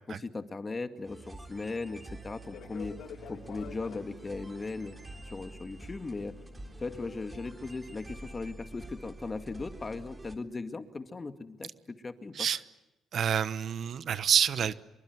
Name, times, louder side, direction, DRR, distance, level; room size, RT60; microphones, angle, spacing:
voice 1, 0.2-3.0 3.3-5.0 5.2-6.3 6.8-12.5, left 3 dB, 30° left, 7 dB, 2.2 m, -38 dB
sound 1, 1.0-10.4, right 2 dB, 20° right, 3.5 m, -47 dB
Fixed-wing aircraft airplane, 2.4-8.9, left 8 dB, 75° left, 2.4 m, -50 dB
voice 2, 13.1-14.7, right 8 dB, 60° right, 14 dB, 1.1 m, -27 dB
26.5 x 23.5 x 9.7 m, 0.95 s
cardioid pair, 90°, 0 cm